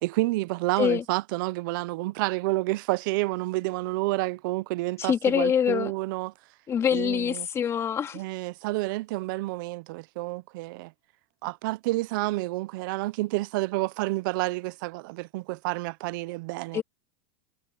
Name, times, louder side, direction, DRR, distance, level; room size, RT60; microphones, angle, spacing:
voice 1, 0.0-6.3 6.9-7.5 8.1-10.9 11.4-16.8, right 21 dB, 55° right, 0.7 m, -29 dB
voice 2, 5.0-5.9 6.7-8.2 16.7-16.8, left 8 dB, 20° left, 2.5 m, -25 dB
supercardioid pair, 155°, 13 cm